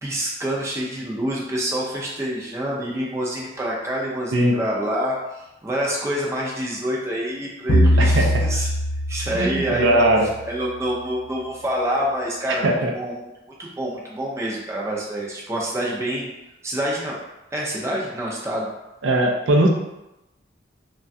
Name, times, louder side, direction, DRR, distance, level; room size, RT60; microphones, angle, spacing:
voice 1, 0.0-8.7 9.1-12.6 12.9-13.3 13.6-16.3 16.6-17.2 17.5-18.7, equal, 15° right, -4 dB, 0.4 m, -27 dB
sound 1, 7.7-10.4, equal, 50° left, 0.5 m, -21 dB
voice 2, 8.0-8.4 9.3-10.3 12.6-12.9 19.0-19.7, right 1 dB, 75° right, 1 dB, 0.4 m, -19 dB
3.2 x 2.2 x 2.6 m, 0.93 s
head